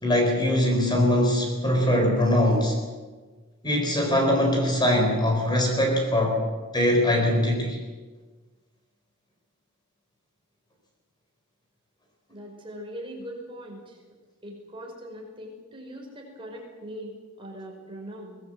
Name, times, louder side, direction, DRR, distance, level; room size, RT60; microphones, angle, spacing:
voice 1, 0.0-2.8 3.6-6.4 6.7-7.8, left 1 dB, 20° left, 2 dB, 4.5 m, -22 dB
voice 2, 12.3-14.0 14.4-18.4, equal, 25° right, 0 dB, 5.5 m, -41 dB
23.0 x 19.0 x 8.0 m, 1.4 s
head